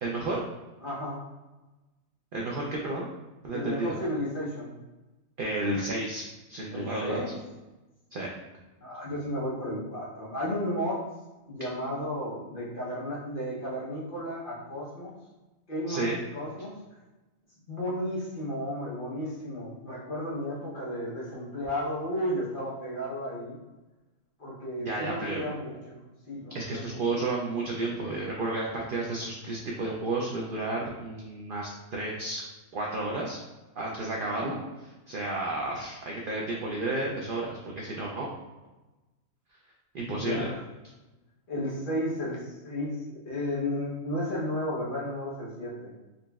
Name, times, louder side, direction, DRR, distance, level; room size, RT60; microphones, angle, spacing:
voice 1, 0.0-0.4 2.3-3.1 3.4-3.9 5.4-7.2 8.1-8.3 15.9-16.2 24.8-25.4 26.5-32.4 32.7-33.4 33.8-38.3 39.9-40.5, right 2 dB, 65° right, -2 dB, 0.5 m, -32 dB
voice 2, 0.8-1.2 3.5-4.7 6.7-7.3 8.8-11.0 11.5-15.1 15.7-16.8 17.7-23.6 24.4-26.0 26.3-27.0 40.1-40.6 41.5-45.9, equal, 45° left, -5 dB, 0.9 m, -33 dB
3.9 x 3.0 x 2.3 m, 1.1 s
omnidirectional pair, 1.4 m